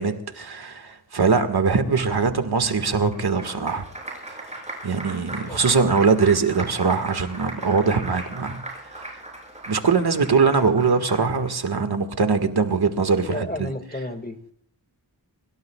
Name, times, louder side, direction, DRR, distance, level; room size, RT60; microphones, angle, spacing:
voice 1, 0.0-3.9 4.3-8.6 8.9-9.0 9.7-13.5, right 5 dB, 70° right, 7 dB, 1.8 m, -22 dB
Applause, 2.8-11.5, right 2 dB, 15° right, 7.6 m, -38 dB
voice 2, 5.5-6.2 13.2-14.4, left 1 dB, 20° left, 7 dB, 2.0 m, -33 dB
24.5 x 23.0 x 2.4 m, 0.64 s
wide cardioid pair, 105°, 40 cm